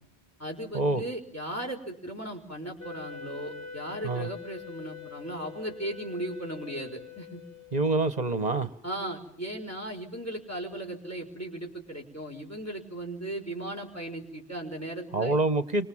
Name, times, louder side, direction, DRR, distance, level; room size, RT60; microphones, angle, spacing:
voice 1, 0.4-7.4 8.8-15.4, right 1 dB, 15° left, 3 dB, 5.1 m, -37 dB
Wind instrument woodwind instrument, 2.8-8.0, left 6 dB, 65° left, 3.1 m, -44 dB
voice 2, 7.7-8.7 15.1-15.9, right 2 dB, 40° right, 13 dB, 1.4 m, -26 dB
30.0 x 26.0 x 7.4 m, 0.63 s
omnidirectional pair, 1.1 m